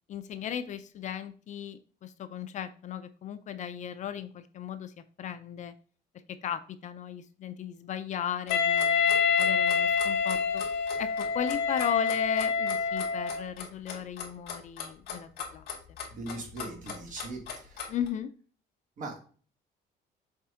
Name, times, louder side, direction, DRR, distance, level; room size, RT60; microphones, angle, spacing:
voice 1, 0.1-4.9 5.2-5.7 6.3-10.6 11.0-15.7 17.9-18.3, left 9 dB, 40° left, 11 dB, 0.4 m, -36 dB
Wind instrument woodwind instrument, 8.5-13.5, left 6 dB, 80° left, 0.9 m, -27 dB
Clock, 8.5-18.1, left 6 dB, 60° left, 2.5 m, -39 dB
voice 2, 16.1-17.9 19.0-19.2, right 2 dB, 45° right, 2 dB, 1.9 m, -40 dB
7.2 x 4.2 x 3.6 m, 0.41 s
cardioid pair, 170°, 18 cm